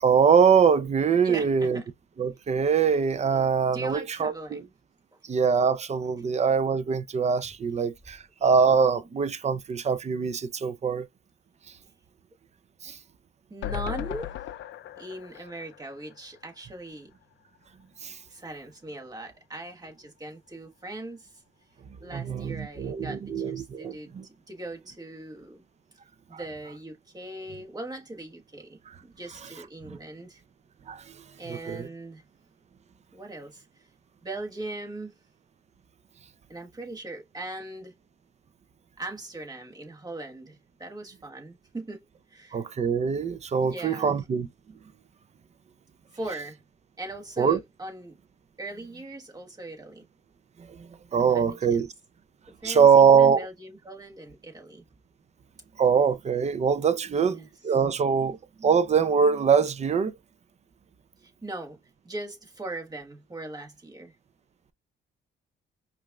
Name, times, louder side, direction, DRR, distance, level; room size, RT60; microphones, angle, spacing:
voice 1, 0.0-1.8 2.2-4.6 5.3-11.1 12.8-13.0 18.0-18.2 22.1-24.3 29.9-30.0 30.9-31.0 31.5-31.9 42.5-44.5 47.4-47.6 50.7-51.9 52.6-53.5 55.8-57.4 57.6-60.1, right 6 dB, 35° right, 0.5 m, -23 dB
voice 2, 1.2-1.8 3.2-4.7 13.5-14.3 15.0-17.1 18.3-21.3 22.0-25.6 26.3-30.4 31.4-32.2 33.1-33.7 34.2-35.1 36.5-37.9 39.0-42.6 43.6-44.1 46.1-46.6 47.0-48.2 48.6-50.0 51.3-51.4 51.7-51.9 52.6-54.8 57.1-57.5 61.2-61.8 62.0-64.1, right 2 dB, 20° right, 1.3 m, -40 dB
sound 1, 13.6-16.9 17.2-17.3 17.6-17.7, left 11 dB, 70° left, 0.4 m, -37 dB
5.1 x 2.5 x 2.2 m
cardioid pair, 90°, 20 cm